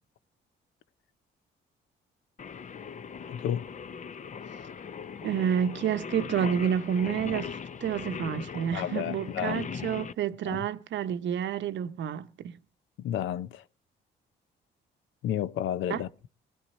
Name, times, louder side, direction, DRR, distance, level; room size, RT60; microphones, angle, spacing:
Singing, 2.4-10.1, left 6 dB, 40° left, 0.6 m, -39 dB
voice 1, 3.2-3.7 8.7-9.7 10.4-10.7 13.0-13.6 15.2-16.1, left 10 dB, 80° left, 0.6 m, -32 dB
voice 2, 5.2-12.6 15.9-16.0, right 8 dB, 65° right, 0.8 m, -29 dB
19.0 x 12.5 x 4.2 m
cardioid pair, 90°, 20 cm